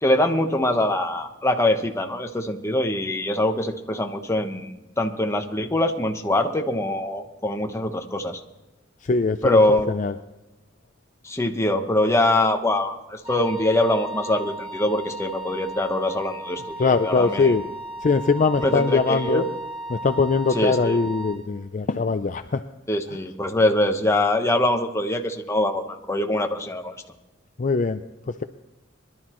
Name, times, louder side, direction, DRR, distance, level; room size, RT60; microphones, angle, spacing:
voice 1, 0.0-8.4 9.4-10.0 11.2-17.5 18.6-19.4 20.5-21.0 22.9-27.0, left 1 dB, 15° left, 4 dB, 1.1 m, -23 dB
voice 2, 9.0-9.6 9.9-10.1 16.8-17.6 18.0-19.4 19.9-22.6 27.6-28.4, left 4 dB, 40° left, 9 dB, 0.5 m, -22 dB
Wind instrument woodwind instrument, 13.2-21.4, equal, 25° right, 4.3 m, -36 dB
22.5 x 12.0 x 3.1 m, 1.0 s
head